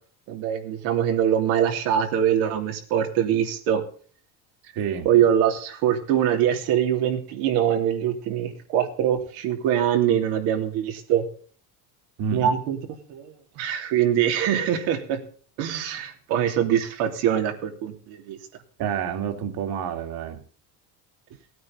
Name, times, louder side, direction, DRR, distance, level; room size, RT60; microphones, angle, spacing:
voice 1, 0.3-3.8 5.0-11.2 12.3-12.8 13.1-15.2 15.6-18.4, right 9 dB, 90° right, 3 dB, 3.2 m, -23 dB
voice 2, 4.6-5.1 12.2-12.5 18.8-20.4, right 8 dB, 65° right, 5 dB, 2.8 m, -29 dB
17.0 x 9.4 x 4.0 m, 0.42 s
cardioid pair, 110°, 40 cm